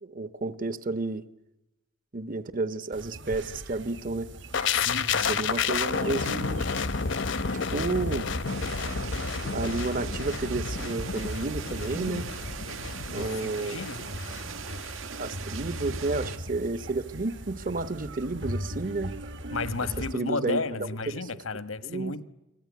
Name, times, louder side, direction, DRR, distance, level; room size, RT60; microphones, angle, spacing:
voice 1, 0.0-1.2 2.1-4.3 5.3-6.6 7.7-8.3 9.5-12.3 13.1-13.8 15.2-19.2 20.0-21.3 21.8-22.2, right 3 dB, 40° right, 1.1 m, -31 dB
sound 1, 2.9-20.1, right 1 dB, 60° right, 1.6 m, -41 dB
sound 2, 4.5-14.4 14.7-14.9, left 5 dB, 60° left, 0.9 m, -31 dB
voice 2, 4.7-5.4 13.1-14.0 19.5-22.2, left 4 dB, 85° left, 1.5 m, -33 dB
sound 3, 8.5-16.4, right 5 dB, 80° right, 1.8 m, -40 dB
28.5 x 21.0 x 9.5 m
head